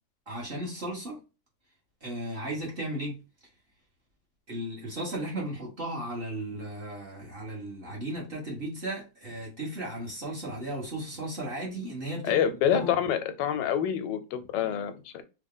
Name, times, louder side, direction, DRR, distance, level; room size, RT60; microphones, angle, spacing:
voice 1, 0.3-1.2 2.0-3.2 4.5-12.4 12.7-12.9, right 1 dB, 35° right, 1.2 m, -35 dB
voice 2, 12.2-15.2, left 9 dB, 85° left, 1.2 m, -27 dB
3.3 x 2.1 x 3.5 m
omnidirectional pair, 1.9 m